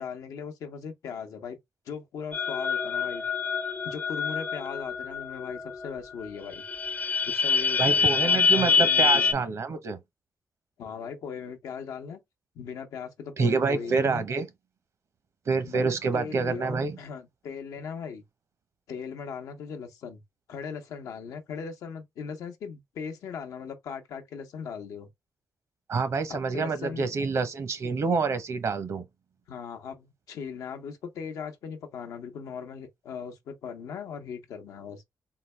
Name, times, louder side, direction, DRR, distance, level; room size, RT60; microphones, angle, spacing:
voice 1, 0.0-1.6 1.9-3.2 3.8-6.6 7.2-9.4 10.8-12.2 12.5-14.3 15.6-18.2 18.9-20.2 20.5-25.1 26.3-27.1 29.5-35.0, left 6 dB, 90° left, 0.7 m, -38 dB
sound 1, 2.3-5.9 6.2-6.3 6.5-9.3, left 5 dB, 25° left, 0.5 m, -25 dB
voice 2, 7.8-10.0 13.4-14.5 15.5-17.0 25.9-29.0, right 4 dB, 60° right, 0.8 m, -27 dB
3.8 x 2.3 x 3.2 m
cardioid pair, 70°, 6 cm